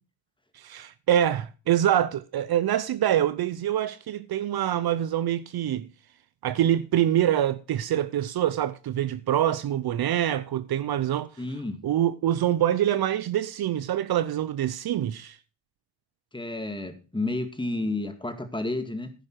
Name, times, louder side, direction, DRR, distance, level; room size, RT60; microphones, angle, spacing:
voice 1, 0.5-5.9 6.4-11.3 11.8-15.4, right 11 dB, 55° right, 0.7 m, -25 dB
voice 2, 11.4-11.8 16.3-19.1, left 2 dB, 10° left, 1.9 m, -31 dB
10.5 x 10.0 x 4.6 m
cardioid pair, 100°, 46 cm